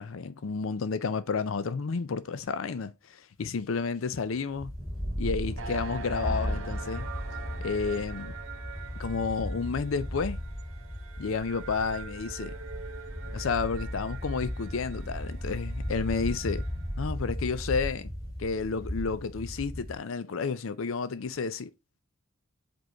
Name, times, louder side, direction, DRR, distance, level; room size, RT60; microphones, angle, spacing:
voice 1, 0.0-4.7 5.2-7.1 7.6-8.3 9.0-10.4 11.2-12.6 13.3-16.6 17.0-18.1 18.4-21.7, left 5 dB, 75° left, 0.5 m, -31 dB
sound 1, 4.3-20.0, equal, 20° left, 2.4 m, -36 dB
sound 2, 5.6-17.0, right 5 dB, 80° right, 0.9 m, -45 dB
5.2 x 4.6 x 4.7 m
head